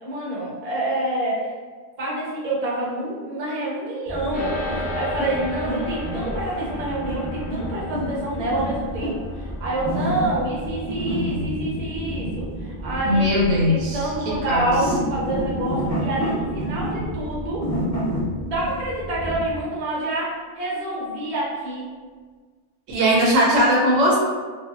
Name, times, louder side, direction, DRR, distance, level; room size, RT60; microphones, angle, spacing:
voice 1, 0.0-1.5 2.0-17.7 18.4-21.8, right 1 dB, 35° right, -6 dB, 0.7 m, -27 dB
sound 1, 4.1-19.6, equal, 25° left, 0.4 m, -29 dB
sound 2, 4.3-13.8, left 1 dB, 55° left, 0.8 m, -36 dB
voice 2, 13.0-14.7 22.9-24.2, equal, 90° right, -3 dB, 1.1 m, -19 dB
2.6 x 2.3 x 2.5 m, 1.5 s
omnidirectional pair, 1.3 m